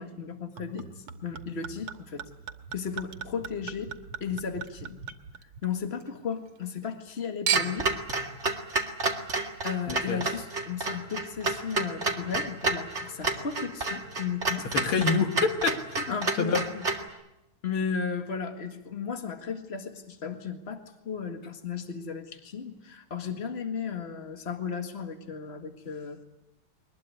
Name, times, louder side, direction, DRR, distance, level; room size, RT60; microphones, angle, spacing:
voice 1, 0.0-2.2 2.7-3.9 4.2-5.0 5.4-7.9 9.6-14.7 16.1-16.8 17.6-20.8 21.1-26.2, left 6 dB, 30° left, 2.0 m, -35 dB
Chink clink / Liquid, 0.6-6.1 6.4-7.1 7.5-8.0 8.7-8.8, right 9 dB, 85° right, 2.2 m, -37 dB
Clock, 7.5-17.1, right 3 dB, 30° right, 2.2 m, -30 dB
voice 2, 9.9-10.2 14.7-16.1 16.4-16.7, left 5 dB, 75° left, 2.3 m, -27 dB
22.0 x 20.5 x 9.7 m
omnidirectional pair, 2.4 m